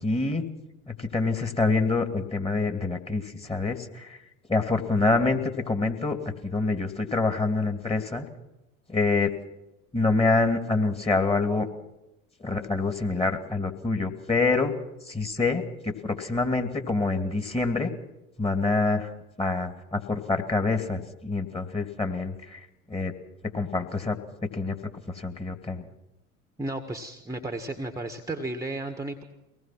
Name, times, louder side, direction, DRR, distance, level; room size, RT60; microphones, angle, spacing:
voice 1, 0.0-0.4 0.9-4.2 4.5-8.2 8.9-9.3 9.9-11.7 12.4-14.8 15.1-17.9 18.4-19.1 19.4-22.6 22.9-23.1 23.5-24.2 24.5-24.8 25.1-25.9, left 3 dB, 15° left, 6 dB, 2.6 m, -26 dB
voice 2, 26.6-29.2, right 2 dB, 5° right, 5 dB, 1.6 m, -33 dB
23.5 x 19.0 x 6.0 m, 0.94 s
figure-of-eight pair, 75°, 43 cm